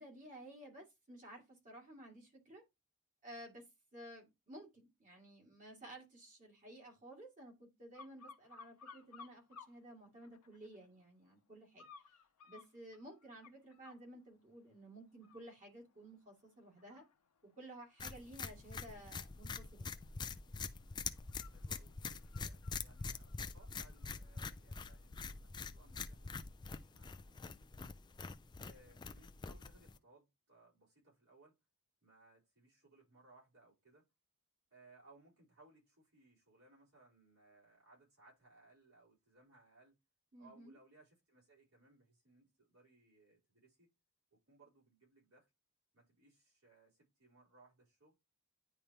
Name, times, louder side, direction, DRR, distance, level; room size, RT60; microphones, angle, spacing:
voice 1, 0.0-2.6 3.2-3.7 3.9-11.8 12.5-17.0 17.6-19.9 40.3-40.7, right 1 dB, 35° right, 2.4 m, -54 dB
sound 1, 7.9-9.7 10.2-10.9 11.8-14.0 14.6-14.8 15.1-24.5 24.9-25.0, left 5 dB, 85° left, 0.8 m, -60 dB
sound 2, 18.0-30.0, left 5 dB, 20° left, 0.3 m, -45 dB
voice 2, 21.5-28.0 28.6-31.5 32.0-34.1 34.7-40.0 40.4-43.9 44.3-45.5 45.9-48.1, right 2 dB, 65° right, 4.2 m, -66 dB
9.9 x 3.4 x 2.9 m
head